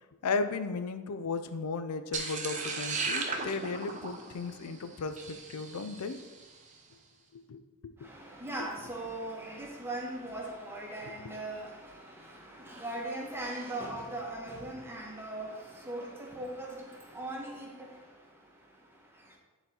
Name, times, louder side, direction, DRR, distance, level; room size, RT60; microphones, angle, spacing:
voice 1, 0.2-6.2 7.5-7.6, left 4 dB, 85° left, 10 dB, 0.5 m, -35 dB
sound 1, 2.1-6.4, right 4 dB, 35° right, 0.7 m, -36 dB
voice 2, 8.0-17.9, right 1 dB, 10° right, -1 dB, 1.1 m, -39 dB
9.1 x 3.9 x 4.3 m, 1.2 s
head